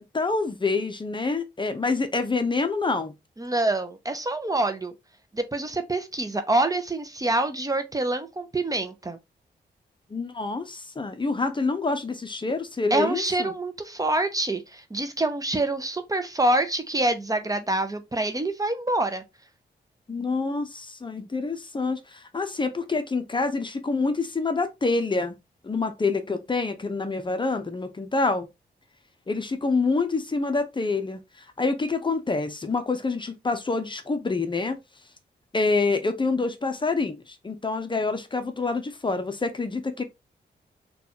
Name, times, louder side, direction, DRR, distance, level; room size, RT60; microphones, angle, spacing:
voice 1, 0.0-3.1 10.1-13.5 20.1-25.3 25.6-28.5 29.3-31.2 31.6-34.8 35.5-40.0, left 3 dB, 25° left, 0.6 m, -27 dB
voice 2, 3.4-4.9 5.3-9.2 12.9-19.2, right 2 dB, 20° right, 0.6 m, -26 dB
3.8 x 2.3 x 2.8 m
cardioid pair, 65°, 18 cm